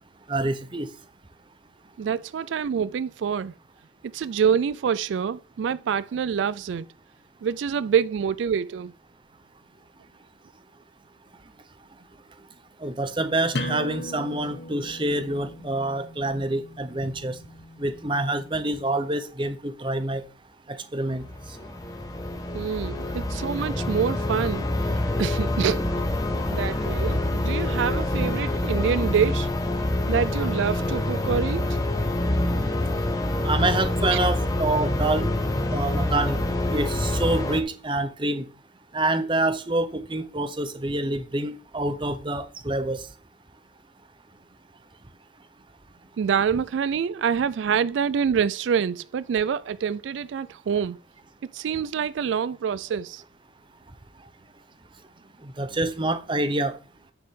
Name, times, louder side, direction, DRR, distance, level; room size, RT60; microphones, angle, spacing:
voice 1, 0.3-0.9 12.8-17.4 17.8-20.2 20.7-21.2 33.4-35.3 35.7-36.4 36.7-38.5 38.9-43.0 55.4-56.8, right 2 dB, 25° right, 0.8 m, -27 dB
voice 2, 2.0-3.5 4.1-6.9 7.4-8.9 22.5-24.7 25.2-25.9 26.5-29.5 30.1-31.8 34.1-34.2 46.2-51.0 51.5-53.2, right 7 dB, 80° right, 0.3 m, -26 dB
sound 1, 13.5-18.9, left 1 dB, 60° left, 1.4 m, -38 dB
sound 2, 21.1-37.6, left 1 dB, 20° left, 1.1 m, -26 dB
9.3 x 7.0 x 3.7 m
head